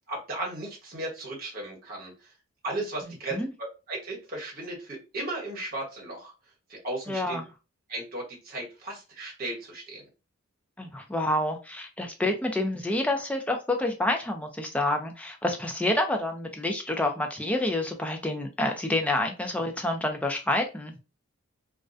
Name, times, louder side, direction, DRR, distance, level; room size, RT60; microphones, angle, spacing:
voice 1, 0.1-2.1 2.6-3.4 3.9-6.3 6.7-7.4 7.9-10.0, right 2 dB, 45° right, -2 dB, 1.1 m, -35 dB
voice 2, 3.0-3.5 7.1-7.5 10.8-20.9, left 1 dB, 5° left, 3 dB, 0.3 m, -28 dB
2.3 x 2.1 x 2.4 m, 0.29 s
head